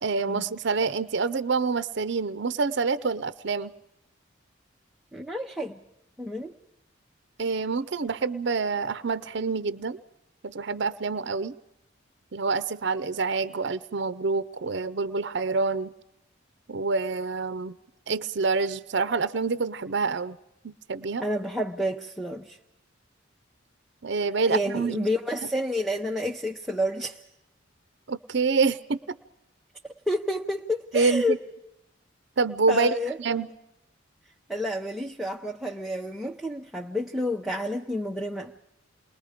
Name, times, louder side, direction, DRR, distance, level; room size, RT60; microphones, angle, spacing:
voice 1, 0.0-3.7 7.4-10.0 10.4-11.6 12.3-15.9 16.7-17.8 18.1-20.4 20.6-21.2 24.0-25.1 28.1-29.2 30.9-31.4 32.4-33.5, right 4 dB, 60° right, 14 dB, 0.7 m, -27 dB
voice 2, 5.1-5.8 6.2-6.5 21.2-22.6 24.5-27.2 30.1-31.4 32.7-33.2 34.5-38.5, left 1 dB, ahead, -1 dB, 0.8 m, -29 dB
28.5 x 21.0 x 5.1 m, 0.86 s
head